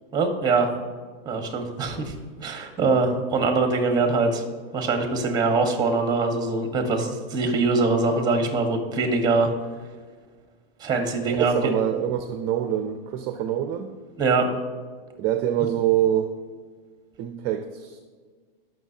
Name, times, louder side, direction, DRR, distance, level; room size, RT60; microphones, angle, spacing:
voice 1, 0.1-0.7 1.2-2.1 2.4-4.4 4.7-9.5 10.8-11.7 14.2-14.5 15.6-15.7, right 3 dB, 15° right, 5 dB, 1.4 m, -23 dB
voice 2, 11.2-13.9 15.2-16.3 17.2-18.0, right 11 dB, 30° right, 7 dB, 0.6 m, -25 dB
17.5 x 5.9 x 2.8 m, 1.5 s
hypercardioid pair, 135°, 29 cm